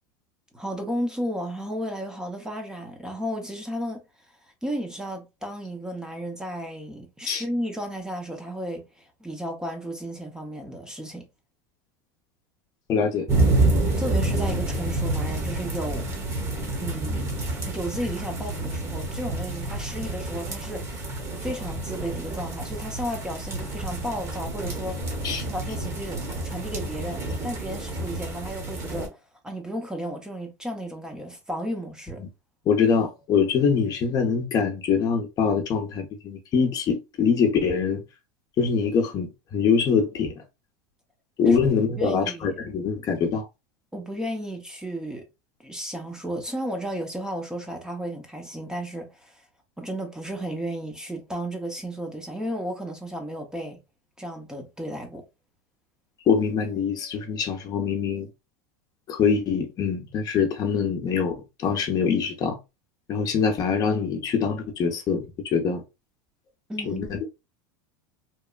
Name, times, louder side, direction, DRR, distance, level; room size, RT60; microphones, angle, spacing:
voice 1, 0.5-4.0 4.4-11.3 13.9-16.1 16.8-17.3 17.7-25.0 25.5-32.2 41.5-41.6 42.0-42.6 43.9-45.2 45.6-49.5 49.8-53.8 54.2-55.2 66.7-67.1, equal, 5° right, 0.6 m, -33 dB
voice 2, 12.9-13.3 25.2-25.4 32.7-38.0 38.6-40.3 41.4-43.5 56.3-58.3 59.1-61.3 61.6-62.6 63.1-65.8 66.8-67.3, left 6 dB, 40° left, 0.7 m, -24 dB
sound 1, 13.3-29.1, right 2 dB, 30° right, 1.0 m, -28 dB
2.9 x 2.2 x 2.3 m
supercardioid pair, 115°, 10 cm